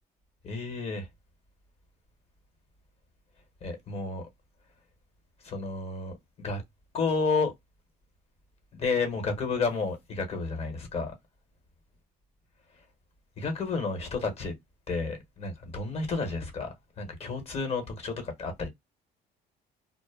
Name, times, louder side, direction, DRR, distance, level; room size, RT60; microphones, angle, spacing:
voice 1, 0.4-1.1 3.6-4.3 5.4-6.6 6.9-7.5 8.7-11.1 13.4-14.5 14.9-16.7 17.0-18.7, left 4 dB, 35° left, 1.1 m, -31 dB
2.1 x 2.0 x 3.3 m
cardioid pair, 110°, 17 cm